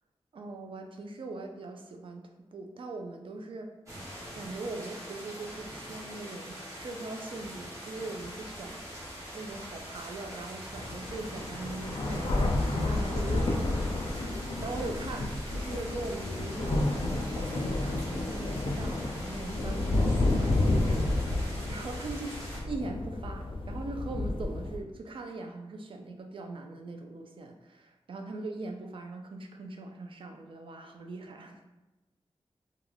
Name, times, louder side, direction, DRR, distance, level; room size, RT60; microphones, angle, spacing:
voice 1, 0.3-3.7 4.3-8.8 9.3-14.0 14.6-31.6, right 2 dB, 55° right, 4 dB, 0.4 m, -41 dB
sound 1, 3.9-22.6, equal, 30° right, 1.0 m, -44 dB
sound 2, 8.2-8.3 9.0-9.1 10.3-10.4 10.8-24.8, left 2 dB, 55° left, 0.4 m, -30 dB
2.3 x 2.2 x 3.2 m, 1.0 s
wide cardioid pair, 110°, 10 cm